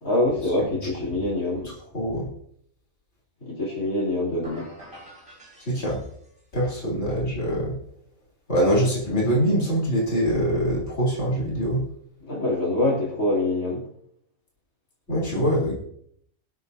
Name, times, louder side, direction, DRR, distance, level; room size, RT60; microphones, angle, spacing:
voice 1, 0.0-1.7 3.4-4.7 12.2-13.8, left 1 dB, 65° left, -4 dB, 3.7 m, -25 dB
voice 2, 1.9-2.3 5.7-6.0 6.5-7.8 8.5-11.8 15.1-15.7, equal, 50° left, -5 dB, 3.8 m, -23 dB
sound 1, 4.4-6.5, equal, 20° right, 4.3 m, -45 dB
23.0 x 8.0 x 2.8 m, 0.68 s
omnidirectional pair, 1.5 m